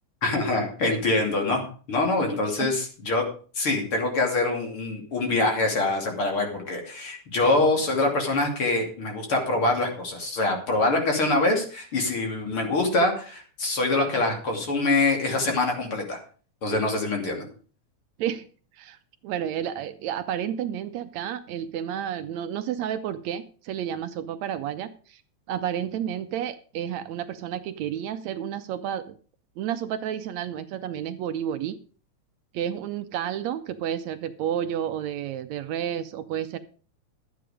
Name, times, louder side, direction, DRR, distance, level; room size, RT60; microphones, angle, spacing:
voice 1, 0.2-3.3 3.6-16.2 16.6-17.4, left 2 dB, 45° left, 2 dB, 3.6 m, -24 dB
voice 2, 19.2-25.2 25.5-29.2 29.6-31.8 32.5-36.6, right 10 dB, 75° right, 10 dB, 1.9 m, -31 dB
12.5 x 9.2 x 5.0 m, 0.40 s
omnidirectional pair, 3.4 m